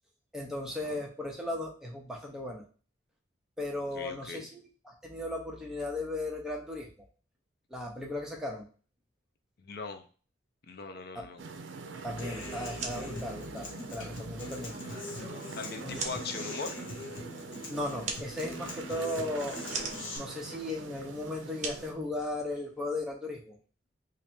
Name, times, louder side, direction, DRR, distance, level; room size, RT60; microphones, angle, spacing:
voice 1, 0.3-2.6 3.6-6.9 7.7-8.6 11.1-11.2 12.0-14.8 15.8-16.0 17.7-19.6 20.2-23.5, left 1 dB, 5° right, -1 dB, 0.7 m, -36 dB
voice 2, 3.9-4.5 9.6-10.0 10.7-11.4 15.5-16.8, left 4 dB, 55° left, 7 dB, 0.5 m, -40 dB
sound 1, 11.4-21.9, right 4 dB, 75° right, 0.5 m, -44 dB
Human voice / Acoustic guitar, 12.2-20.2, left 2 dB, 90° left, 1.0 m, -42 dB
sound 2, 12.7-22.8, right 4 dB, 35° right, 0.7 m, -43 dB
3.3 x 2.6 x 4.3 m, 0.38 s
head